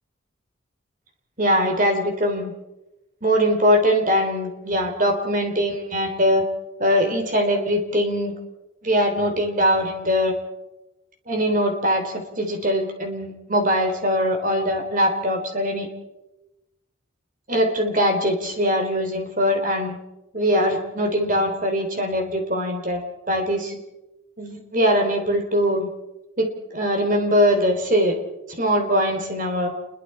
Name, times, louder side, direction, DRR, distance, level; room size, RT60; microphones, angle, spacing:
voice 1, 1.4-2.5 3.2-6.4 6.8-8.3 8.8-10.3 11.3-15.9 17.5-20.0 20.3-23.8 24.4-25.9 26.4-28.2 28.6-29.7, equal, 40° right, 4 dB, 3.5 m, -22 dB
28.5 x 22.0 x 4.4 m, 0.96 s
head